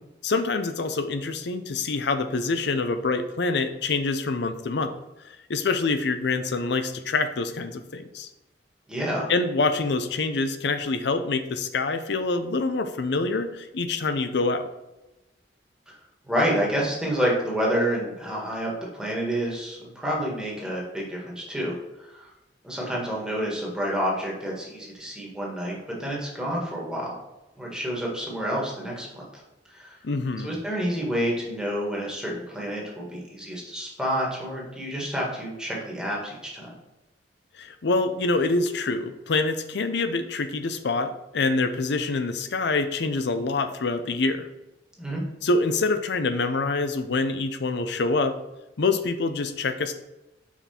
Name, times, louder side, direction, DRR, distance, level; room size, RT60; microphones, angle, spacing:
voice 1, 0.2-5.0 5.2-8.3 9.3-14.7 30.0-30.5 37.6-44.5 45.4-48.4 48.8-49.9, left 3 dB, 70° left, 9 dB, 0.6 m, -26 dB
voice 2, 8.9-9.3 16.3-22.3 22.6-27.2 27.6-29.4 29.7-30.0 30.4-36.7 45.0-45.2, equal, 5° right, -3 dB, 1.6 m, -29 dB
5.7 x 4.2 x 4.4 m, 0.98 s
head